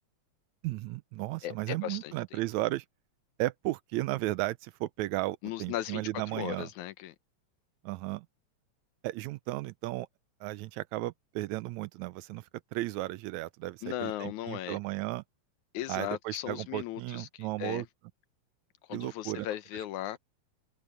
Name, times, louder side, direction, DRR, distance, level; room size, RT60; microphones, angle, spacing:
voice 1, 0.6-2.9 3.4-6.7 7.8-8.3 9.0-10.1 10.4-12.5 12.7-15.2 15.9-17.9 18.9-19.5, right 18 dB, 85° right, 1.9 m, -34 dB
voice 2, 1.4-2.4 5.4-6.0 6.3-7.2 13.8-14.8 15.7-17.9 18.9-20.2, left 13 dB, 90° left, 2.3 m, -37 dB
omnidirectional pair, 3.3 m